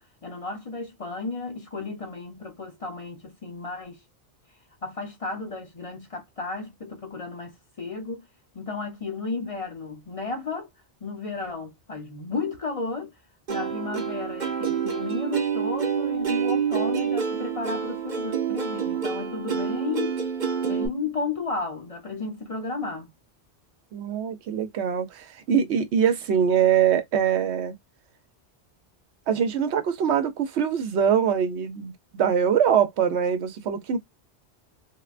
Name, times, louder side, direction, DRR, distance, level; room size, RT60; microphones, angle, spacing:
voice 1, 0.0-4.0 4.8-8.2 8.5-10.7 11.0-13.1 13.5-20.2 20.6-23.1, left 3 dB, 40° left, 0.6 m, -33 dB
Plucked string instrument, 13.5-20.9, right 7 dB, 50° right, 0.7 m, -27 dB
voice 2, 23.9-27.7 29.3-34.0, right 8 dB, 85° right, 1.0 m, -23 dB
3.5 x 2.1 x 2.3 m
omnidirectional pair, 1.1 m